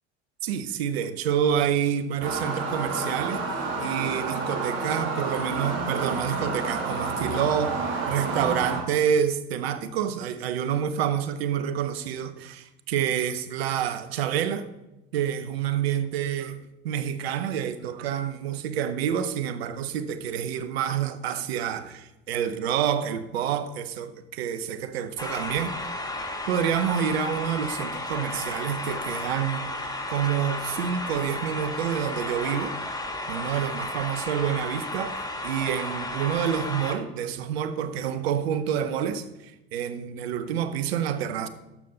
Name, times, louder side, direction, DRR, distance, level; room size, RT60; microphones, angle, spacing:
voice 1, 0.4-7.8 8.1-14.7 15.1-25.7 26.5-29.6 30.1-32.8 33.3-41.5, right 9 dB, 85° right, 0.8 m, -28 dB
sound 1, 2.2-8.8, right 3 dB, 40° right, 2.6 m, -30 dB
sound 2, 25.2-37.0, left 2 dB, 10° left, 1.7 m, -33 dB
12.0 x 7.0 x 3.9 m
hypercardioid pair, 65°, 30 cm